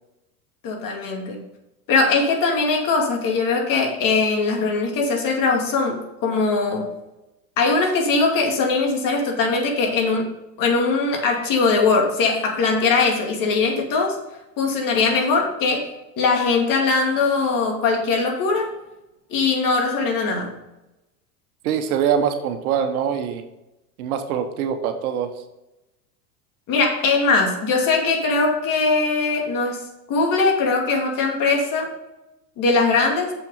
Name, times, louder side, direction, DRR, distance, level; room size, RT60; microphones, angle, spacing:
voice 1, 0.6-1.4 1.9-6.9 7.6-14.2 14.6-15.9 16.2-18.7 19.3-20.5 26.7-29.8 30.1-31.9 32.6-33.3, left 4 dB, 45° left, 2 dB, 2.4 m, -21 dB
voice 2, 21.6-23.4 24.0-25.3, right 8 dB, 65° right, 7 dB, 1.3 m, -23 dB
7.0 x 5.8 x 5.4 m, 0.96 s
hypercardioid pair, 100°, 46 cm